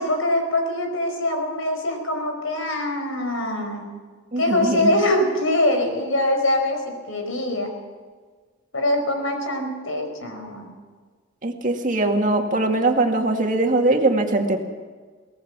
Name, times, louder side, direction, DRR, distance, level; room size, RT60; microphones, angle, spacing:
voice 1, 0.0-3.8 4.4-7.7 8.7-10.7, left 1 dB, 85° left, 4 dB, 4.9 m, -23 dB
voice 2, 4.3-4.9 11.4-14.6, right 2 dB, 40° right, 3 dB, 2.1 m, -21 dB
23.5 x 18.0 x 6.1 m, 1.5 s
head